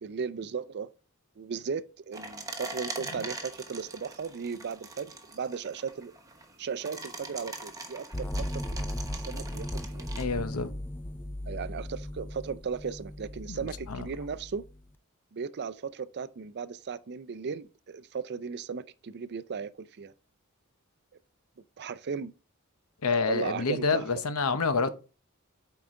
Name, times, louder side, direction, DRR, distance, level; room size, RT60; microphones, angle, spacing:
voice 1, 0.0-0.9 1.4-6.1 6.6-8.3 8.5-10.1 11.5-14.6 15.3-20.1 21.8-22.3 23.3-24.0, right 6 dB, 50° right, 0.4 m, -36 dB
sound 1, 2.1-10.2, right 2 dB, 15° right, 1.0 m, -42 dB
sound 2, 8.1-14.9, left 1 dB, 10° left, 0.3 m, -37 dB
voice 2, 10.2-10.7 13.5-14.1 23.0-24.9, left 4 dB, 90° left, 0.8 m, -28 dB
7.9 x 4.7 x 3.7 m
head